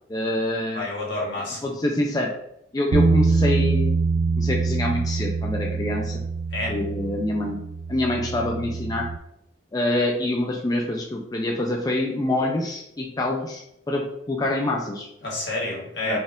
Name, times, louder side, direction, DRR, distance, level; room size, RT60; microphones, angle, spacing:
voice 1, 0.1-0.9 1.6-2.3 2.7-3.9 4.4-6.2 6.7-7.6 7.9-9.1 9.7-15.1 16.1-16.2, left 1 dB, 20° left, 0 dB, 0.3 m, -26 dB
voice 2, 0.7-1.7 6.5-6.8 15.2-16.2, left 2 dB, 70° left, -5 dB, 1.5 m, -29 dB
sound 1, 2.9-9.2, right 4 dB, 90° right, 0.3 m, -24 dB
4.2 x 2.4 x 3.5 m, 0.78 s
head